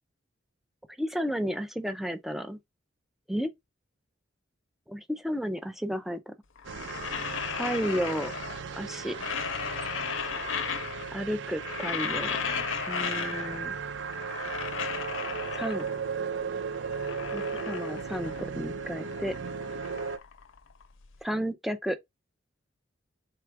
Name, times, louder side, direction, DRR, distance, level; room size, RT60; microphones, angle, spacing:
voice 1, 1.0-2.6 3.3-3.5 4.9-6.3 7.5-8.3 8.7-9.2 11.1-12.4 12.9-13.8 15.5-15.9 17.3-19.3 21.2-22.0, equal, ahead, 0.3 m, -32 dB
sound 1, 6.6-8.7 9.0-11.2 11.5-13.7 14.0-16.1 16.6-18.6 18.8-21.0, left 7 dB, 80° left, 0.6 m, -35 dB
sound 2, 6.6-20.2, right 6 dB, 65° right, 0.4 m, -36 dB
4.1 x 2.3 x 4.5 m
head